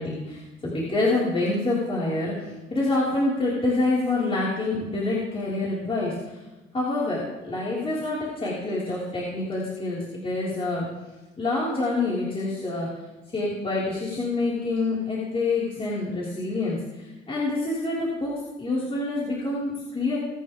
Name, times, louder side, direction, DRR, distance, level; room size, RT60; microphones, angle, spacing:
voice 1, 0.0-6.2 6.7-10.9 11.4-12.9 13.3-20.2, left 2 dB, 30° left, -8 dB, 5.6 m, -27 dB
24.0 x 11.0 x 3.8 m, 1.1 s
cardioid pair, 90°, 20 cm